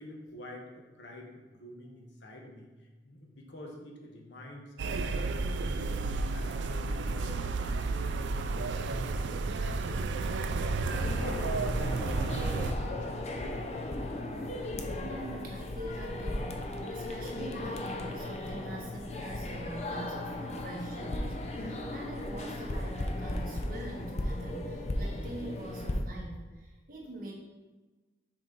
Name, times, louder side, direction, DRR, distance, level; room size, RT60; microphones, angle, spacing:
voice 1, 0.0-6.0 6.3-7.8 8.2-13.9, left 1 dB, 80° left, 0 dB, 1.1 m, -48 dB
sound 1, 4.8-12.7, right 3 dB, 90° right, 0.4 m, -32 dB
sound 2, 10.9-26.0, left 1 dB, 40° left, 0.5 m, -36 dB
voice 2, 14.9-27.3, right 1 dB, 50° right, -2 dB, 1.3 m, -43 dB
6.0 x 4.1 x 3.9 m, 1.2 s
head